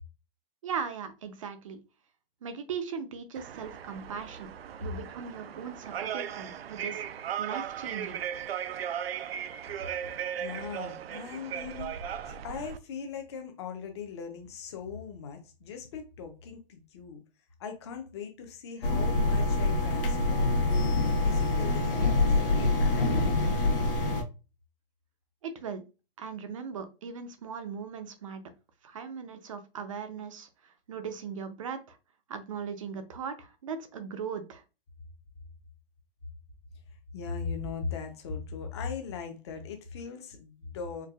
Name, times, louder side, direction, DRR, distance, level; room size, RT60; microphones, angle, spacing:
voice 1, 0.6-1.8 2.4-4.5 4.8-8.3 25.4-25.8 26.2-28.4 28.8-32.0 32.3-34.6, right 6 dB, 35° right, 0.5 m, -39 dB
sound 1, 3.4-12.8, right 9 dB, 85° right, 0.5 m, -37 dB
voice 2, 10.4-11.9 12.2-17.2 17.6-20.7 21.2-24.1 37.1-41.1, left 6 dB, 30° left, 0.6 m, -39 dB
sound 2, 18.8-24.2, left 2 dB, 65° left, 1.0 m, -25 dB
4.5 x 2.3 x 2.3 m
hypercardioid pair, 155°, 29 cm